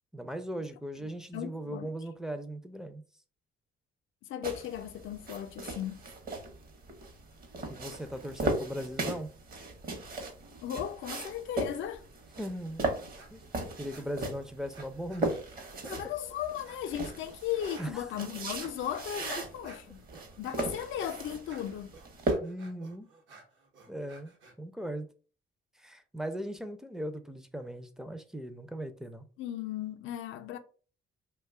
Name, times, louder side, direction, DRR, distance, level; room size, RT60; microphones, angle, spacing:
voice 1, 0.1-3.0 7.7-9.3 12.4-12.9 13.3-13.5 13.8-15.4 17.8-18.0 22.4-23.1 23.9-25.1 25.8-29.3, right 1 dB, 5° right, 0.4 m, -38 dB
voice 2, 1.0-1.9 4.3-6.0 10.6-12.1 15.9-20.0 20.4-22.0 29.4-30.6, left 10 dB, 75° left, 0.4 m, -36 dB
sound 1, 4.4-22.3, right 2 dB, 50° right, 0.8 m, -38 dB
sound 2, 12.5-12.9 13.2-13.5 13.9-15.5 15.8-24.5, right 3 dB, 75° right, 0.9 m, -55 dB
2.6 x 2.2 x 3.5 m
cardioid pair, 90°, 20 cm